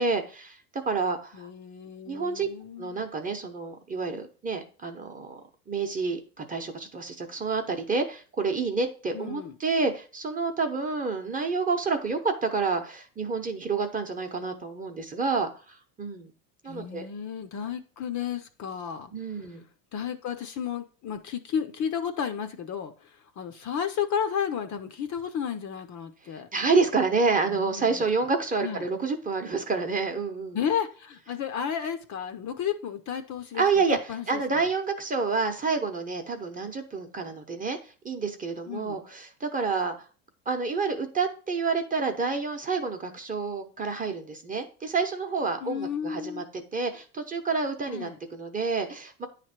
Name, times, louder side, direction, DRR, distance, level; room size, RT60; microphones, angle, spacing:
voice 1, 0.0-1.5 2.1-2.5 2.8-5.4 5.7-16.3 16.6-17.1 19.1-19.6 26.5-30.6 33.5-34.0 34.3-39.9 40.5-46.4 46.7-49.3, right 4 dB, 15° right, 4 dB, 0.9 m, -28 dB
voice 2, 1.3-3.0 9.1-9.6 16.6-19.1 19.9-26.5 27.5-28.0 28.6-28.9 30.5-33.8 34.1-34.7 38.7-39.0 45.6-46.5 47.9-48.2, left 8 dB, 40° left, 8 dB, 0.8 m, -33 dB
9.8 x 3.3 x 5.9 m, 0.38 s
supercardioid pair, 130°, 46 cm